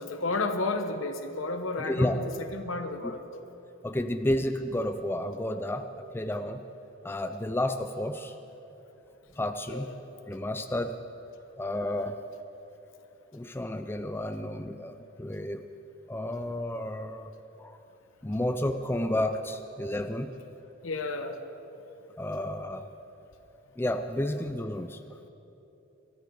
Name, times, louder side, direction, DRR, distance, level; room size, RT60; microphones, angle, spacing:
voice 1, 0.0-3.4 9.7-10.1 20.8-21.4, left 3 dB, 80° left, 7 dB, 1.1 m, -32 dB
voice 2, 1.9-2.2 3.0-3.1 3.8-6.6 7.0-8.3 9.4-9.9 10.3-11.0 11.6-12.2 13.3-15.6 16.1-17.8 18.2-20.3 22.2-22.9 23.8-25.0, left 1 dB, 10° left, 8 dB, 0.4 m, -31 dB
22.0 x 14.0 x 3.9 m, 3.0 s
head